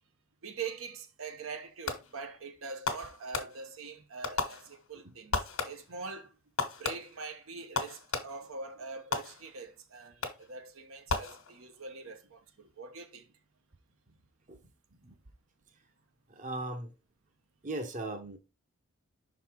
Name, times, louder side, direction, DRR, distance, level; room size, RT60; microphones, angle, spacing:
voice 1, 0.4-5.4 5.6-6.3 6.8-13.3, right 4 dB, 75° right, 0.9 m, -43 dB
Fireworks, 1.9-2.3 2.9-3.9 4.2-5.0 5.3-6.0 6.6-8.6 9.1-9.7 10.2-10.6 11.1-11.8, left 4 dB, 80° left, 1.3 m, -36 dB
voice 2, 16.3-16.9 17.6-18.4, right 2 dB, 35° right, 0.8 m, -38 dB
5.8 x 4.0 x 4.4 m
head